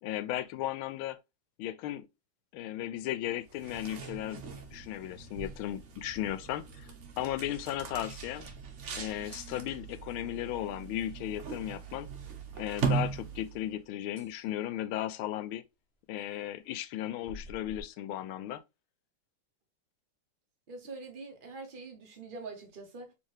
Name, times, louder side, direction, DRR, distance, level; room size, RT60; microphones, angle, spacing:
voice 1, 0.0-1.2 1.6-2.1 2.5-4.4 4.7-6.9 7.2-8.5 8.9-12.1 12.5-15.6 16.1-18.6, left 13 dB, 80° left, 1.4 m, -36 dB
sound 1, 3.4-13.8, right 5 dB, 50° right, 0.9 m, -39 dB
sound 2, 14.2-14.5 17.3-17.8, left 1 dB, 45° left, 0.9 m, -47 dB
voice 2, 20.7-23.1, right 3 dB, 85° right, 0.4 m, -44 dB
4.5 x 3.4 x 3.1 m
omnidirectional pair, 2.3 m